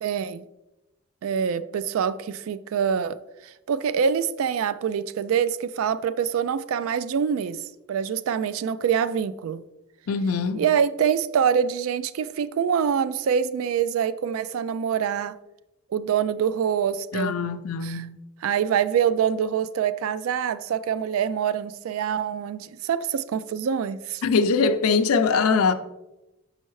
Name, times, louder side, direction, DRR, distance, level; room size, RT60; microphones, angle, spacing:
voice 1, 0.0-0.4 1.2-3.2 3.4-9.6 10.5-15.3 15.9-17.3 17.8-18.0 18.4-24.2, right 7 dB, 75° right, 0.3 m, -25 dB
voice 2, 10.1-10.6 17.1-18.2 24.2-25.7, left 5 dB, 85° left, 0.5 m, -22 dB
6.3 x 5.6 x 3.1 m
head